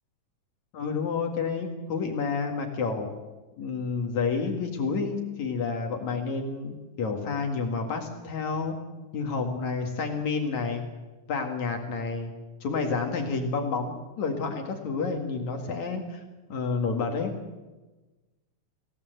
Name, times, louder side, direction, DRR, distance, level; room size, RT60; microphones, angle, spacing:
voice 1, 0.7-3.1 3.6-8.8 9.1-10.8 11.3-12.3 12.6-16.2 16.5-17.3, left 4 dB, 65° left, 3 dB, 3.3 m, -29 dB
26.0 x 17.0 x 8.1 m, 1.2 s
omnidirectional pair, 3.5 m